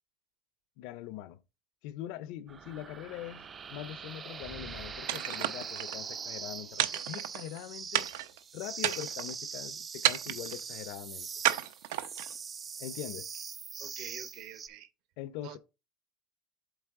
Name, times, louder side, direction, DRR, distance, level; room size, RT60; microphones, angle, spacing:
voice 1, 0.8-1.4 1.8-8.1 8.5-11.3 12.8-13.3 15.2-15.6, left 13 dB, 55° left, 0.5 m, -42 dB
sound 1, 2.5-14.7, right 6 dB, 20° right, 0.4 m, -42 dB
sound 2, 5.1-6.0 6.8-7.6 7.9-8.4 8.8-9.3 10.0-10.6 11.4-12.4, right 14 dB, 85° right, 0.6 m, -31 dB
voice 2, 13.8-14.9 15.4-15.6, right 10 dB, 50° right, 0.8 m, -46 dB
8.0 x 4.1 x 3.5 m
cardioid pair, 180°, 0 cm